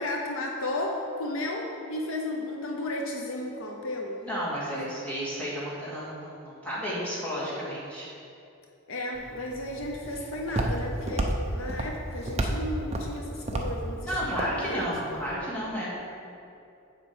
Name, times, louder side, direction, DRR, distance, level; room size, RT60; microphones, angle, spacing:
voice 1, 0.0-4.2 8.9-14.9, left 1 dB, 65° left, 0 dB, 0.8 m, -34 dB
voice 2, 4.2-8.1 14.0-15.9, equal, 5° left, -9 dB, 2.2 m, -32 dB
Walk footsteps, 9.1-15.3, right 1 dB, 30° right, 0.7 m, -32 dB
7.7 x 5.2 x 7.2 m, 2.8 s
head